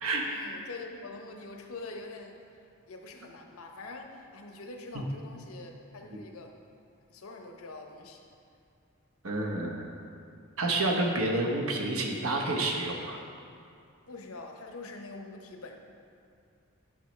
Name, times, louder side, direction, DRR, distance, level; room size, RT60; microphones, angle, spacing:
voice 1, 0.2-2.4 2.9-6.6 7.1-8.2 14.1-15.8, left 3 dB, 70° left, 3 dB, 0.7 m, -44 dB
voice 2, 9.2-9.9 10.6-13.2, right 2 dB, 70° right, 1 dB, 0.9 m, -29 dB
8.8 x 6.3 x 3.2 m, 2.4 s
head